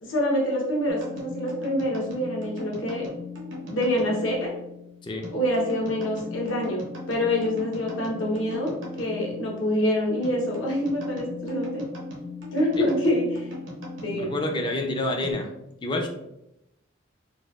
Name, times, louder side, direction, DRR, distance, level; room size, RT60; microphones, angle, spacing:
voice 1, 0.0-3.1 3.6-4.5 5.3-11.8 12.5-13.5 14.0-14.3, left 1 dB, 75° left, -2 dB, 0.9 m, -26 dB
sound 1, 0.9-15.3, left 3 dB, 75° right, 0.8 m, -39 dB
voice 2, 14.1-15.5 15.8-16.1, left 2 dB, 25° left, 3 dB, 0.4 m, -28 dB
4.0 x 2.3 x 2.3 m, 0.85 s
head